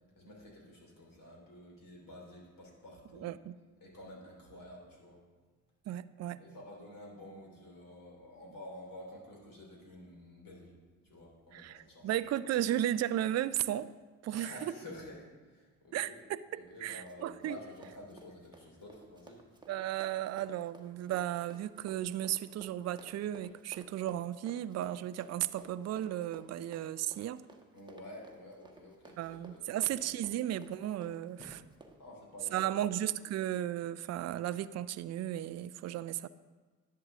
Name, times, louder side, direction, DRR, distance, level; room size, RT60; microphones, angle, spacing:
voice 1, 0.2-3.3 3.8-5.2 6.4-10.7 11.0-12.1 14.3-16.2 16.5-19.4 27.7-30.3 31.4-31.5 31.9-32.8, left 1 dB, 50° left, -1 dB, 3.2 m, -50 dB
voice 2, 3.2-3.6 5.9-6.4 11.5-13.9 14.2-14.7 15.9-17.6 19.7-27.4 29.2-31.4 32.5-36.3, right 12 dB, 40° right, 15 dB, 0.4 m, -35 dB
Run, 16.7-32.0, right 2 dB, 10° right, 1.2 m, -56 dB
10.5 x 7.8 x 3.7 m, 1.4 s
hypercardioid pair, 45°, 43 cm